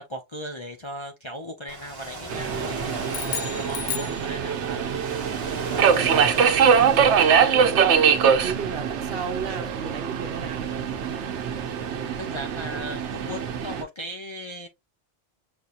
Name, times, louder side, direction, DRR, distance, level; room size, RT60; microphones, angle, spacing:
voice 1, 0.0-5.0 5.5-5.8 12.2-14.7, equal, 35° left, 0.5 m, -38 dB
Ocean, 1.7-7.5, right 2 dB, 20° right, 1.3 m, -38 dB
Subway metro underground, 2.3-13.8, right 7 dB, 85° right, 1.0 m, -23 dB
voice 2, 2.8-3.1 5.4-6.3 6.7-7.3 7.5-10.7, right 6 dB, 60° right, 1.0 m, -35 dB
sound 1, 3.1-4.9, left 10 dB, 65° left, 0.8 m, -34 dB
6.1 x 2.7 x 2.5 m
omnidirectional pair, 1.1 m